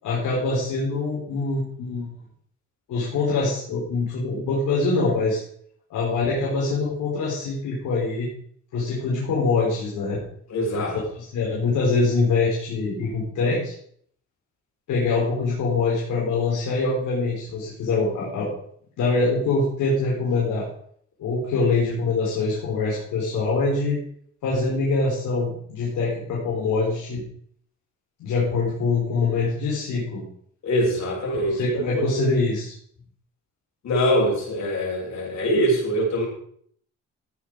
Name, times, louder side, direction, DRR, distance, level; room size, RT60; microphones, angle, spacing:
voice 1, 0.0-2.1 2.9-5.4 5.9-8.3 8.7-10.2 10.7-10.8 11.1-13.7 14.9-18.5 19.0-20.6 21.2-24.0 24.4-27.2 28.2-30.2 31.4-32.7, left 3 dB, 80° left, -5 dB, 4.4 m, -24 dB
voice 2, 10.5-11.0 30.6-32.0 33.8-36.3, equal, 65° left, -2 dB, 7.1 m, -23 dB
15.0 x 9.2 x 4.9 m, 0.62 s
cardioid pair, 90°, 30 cm